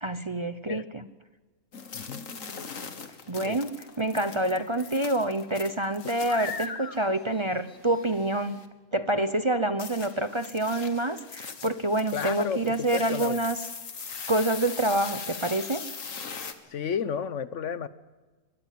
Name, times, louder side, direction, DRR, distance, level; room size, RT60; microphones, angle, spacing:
voice 1, 0.0-1.1 3.3-8.6 8.9-13.6 14.3-15.9, right 1 dB, 25° right, 10 dB, 0.7 m, -27 dB
sound 1, 1.7-8.7 9.8-16.5, left 5 dB, 90° left, 2.0 m, -40 dB
voice 2, 12.1-13.4 16.7-17.9, left 7 dB, 70° left, 15 dB, 1.2 m, -32 dB
23.5 x 21.5 x 7.7 m, 1.3 s
omnidirectional pair, 1.3 m